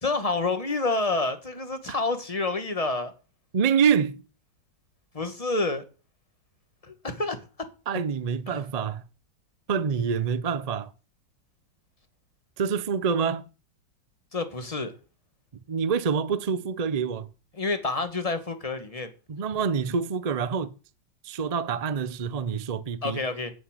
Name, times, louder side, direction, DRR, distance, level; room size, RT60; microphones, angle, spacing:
voice 1, 0.0-3.1 5.1-5.8 6.8-7.4 8.5-8.6 14.3-14.9 17.5-19.1 23.0-23.5, left 3 dB, 20° left, 1.4 m, -28 dB
voice 2, 3.5-4.2 7.9-9.0 9.7-10.9 12.6-13.4 15.7-17.3 19.3-20.7 21.2-23.2, right 6 dB, 70° right, 0.3 m, -26 dB
11.0 x 6.8 x 8.9 m
omnidirectional pair, 2.0 m